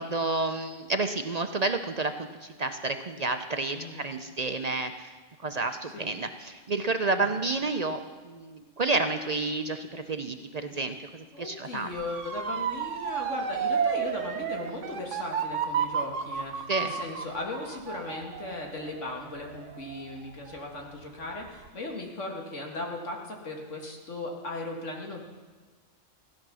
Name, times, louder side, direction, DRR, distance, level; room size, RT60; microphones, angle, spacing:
voice 1, 0.0-5.1 5.4-10.4 10.6-11.9 16.7-16.9, right 3 dB, 45° right, 7 dB, 0.6 m, -30 dB
voice 2, 3.7-4.0 5.9-6.1 7.2-7.5 11.3-25.2, left 2 dB, 75° left, 0 dB, 2.2 m, -37 dB
Motor vehicle (road) / Siren, 11.9-20.8 21.2-21.7, right 7 dB, 80° right, 1.2 m, -32 dB
16.0 x 10.5 x 6.2 m, 1.3 s
omnidirectional pair, 1.3 m